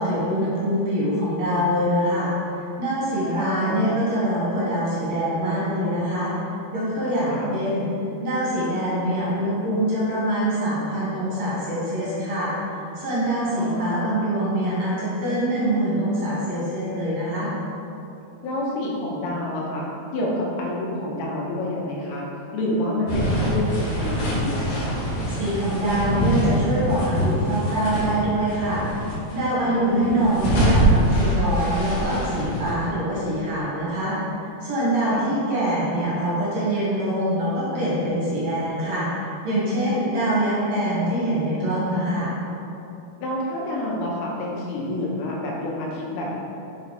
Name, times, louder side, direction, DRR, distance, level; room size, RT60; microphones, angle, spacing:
voice 1, 0.0-2.3 2.8-6.3 6.7-7.9 8.2-12.5 13.0-17.5 25.4-28.8 29.3-34.2 34.6-39.1 39.4-42.3, right 1 dB, 50° right, -8 dB, 2.6 m, -24 dB
voice 2, 3.1-3.8 7.3-7.6 13.5-14.0 18.4-19.8 20.1-22.3 22.5-25.0 29.7-30.4 35.0-35.3 43.2-46.4, left 1 dB, 85° left, -3 dB, 3.1 m, -28 dB
sound 1, 23.1-28.2 28.5-29.4 29.9-32.7, right 1 dB, 70° left, 3.4 m, -24 dB
7.4 x 6.4 x 4.2 m, 2.8 s
omnidirectional pair, 4.4 m